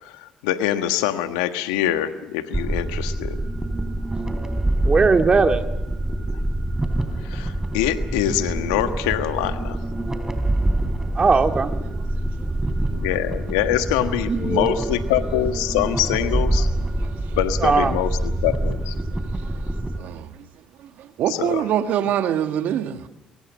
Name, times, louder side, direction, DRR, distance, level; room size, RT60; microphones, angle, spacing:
voice 1, 0.0-3.4 7.2-9.8 12.9-16.7 17.3-18.9 21.4-21.6, left 12 dB, 90° left, 1.4 m, -24 dB
sound 1, 2.5-20.0, right 1 dB, 15° right, 3.7 m, -25 dB
voice 2, 4.8-5.6 11.2-11.7 14.3-14.8 17.6-18.0, right 4 dB, 35° right, 2.1 m, -19 dB
voice 3, 19.1-19.6 20.0-20.4 20.8-23.1, right 10 dB, 70° right, 1.5 m, -26 dB
23.5 x 23.5 x 6.3 m
supercardioid pair, 60°, 3 cm